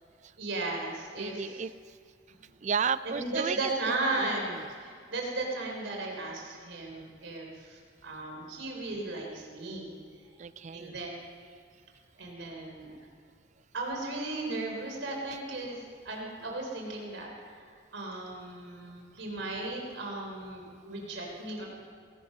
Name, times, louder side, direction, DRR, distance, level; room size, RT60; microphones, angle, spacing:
voice 1, 0.4-1.6 2.3-2.4 3.1-9.9 10.7-11.1 12.2-12.9 13.7-21.7, right 2 dB, 85° right, 0 dB, 3.4 m, -36 dB
voice 2, 1.2-2.0 2.6-4.7 10.4-11.0, right 6 dB, 40° right, 16 dB, 0.3 m, -34 dB
19.0 x 12.5 x 5.5 m, 2.1 s
head